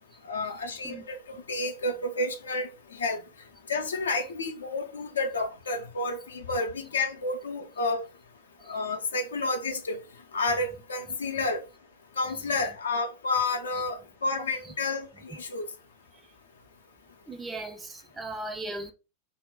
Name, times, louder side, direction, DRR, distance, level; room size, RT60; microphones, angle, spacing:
voice 1, 0.2-3.2 3.7-8.0 8.7-10.0 10.3-11.6 12.2-15.7, left 3 dB, 70° left, 0.5 m, -30 dB
voice 2, 17.3-18.9, right 2 dB, 10° right, 0.4 m, -37 dB
2.1 x 2.0 x 3.6 m
figure-of-eight pair, 90°, 0 cm